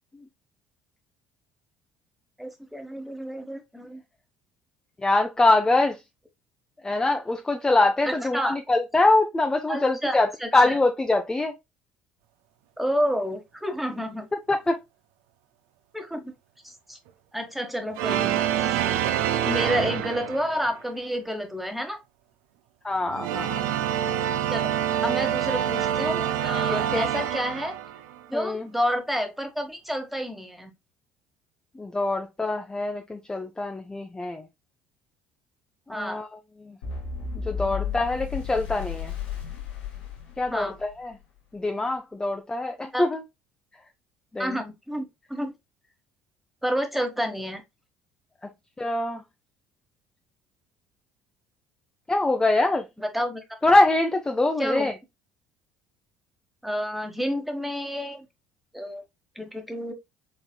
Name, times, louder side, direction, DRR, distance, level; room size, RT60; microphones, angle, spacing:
voice 1, 2.4-4.0 8.1-8.6 9.7-10.8 12.8-14.3 15.9-16.3 16.6-17.0 17.3-18.8 19.4-22.0 24.5-24.7 25.0-27.8 28.3-30.7 35.9-36.2 40.5-40.8 42.9-43.0 44.4-45.5 46.6-47.6 53.0-53.4 54.6-54.9 56.6-58.3 58.7-59.0 59.3-59.9, equal, 5° right, 1.2 m, -30 dB
voice 2, 5.0-6.0 6.8-11.5 14.5-14.8 22.8-23.6 26.7-27.1 28.3-28.7 31.8-34.4 35.9-36.3 36.6-36.8 37.5-39.1 40.4-41.2 41.5-43.2 44.3-44.6 48.8-49.2 52.1-52.8 53.6-54.9, left 2 dB, 15° left, 0.5 m, -24 dB
sound 1, 18.0-20.7 23.0-28.2, right 10 dB, 65° right, 0.4 m, -26 dB
sound 2, 36.8-40.9, left 7 dB, 75° left, 1.6 m, -33 dB
4.3 x 3.8 x 2.2 m
figure-of-eight pair, 55°, 5 cm